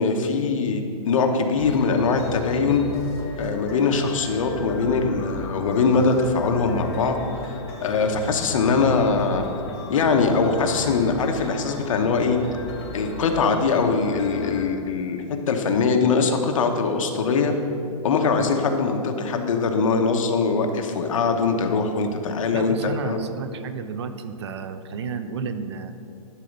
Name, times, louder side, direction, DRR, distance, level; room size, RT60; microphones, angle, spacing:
voice 1, 0.0-2.9 3.4-7.2 7.8-9.4 9.9-12.4 12.9-17.5 18.0-23.2, left 4 dB, 60° left, 4 dB, 1.0 m, -22 dB
sound 1, 1.6-14.7, left 3 dB, 45° left, 1.3 m, -36 dB
voice 2, 22.5-25.9, right 5 dB, 45° right, 10 dB, 0.5 m, -32 dB
11.5 x 4.0 x 6.6 m, 2.6 s
hypercardioid pair, 170°, 19 cm